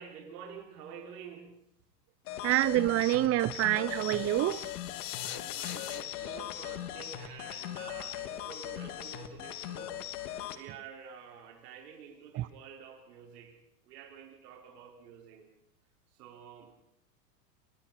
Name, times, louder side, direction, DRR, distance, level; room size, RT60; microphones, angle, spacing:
voice 1, 0.0-1.6 5.2-10.0 10.5-15.5 16.1-16.8, right 7 dB, 70° right, 5.3 m, -49 dB
sound 1, 2.3-10.6, left 12 dB, 60° left, 2.8 m, -40 dB
voice 2, 2.4-4.7 12.3-12.5, right 15 dB, 30° right, 0.8 m, -27 dB
sound 2, 3.9-8.0, left 16 dB, 40° left, 1.6 m, -43 dB
28.5 x 24.5 x 4.4 m
hypercardioid pair, 105°, 49 cm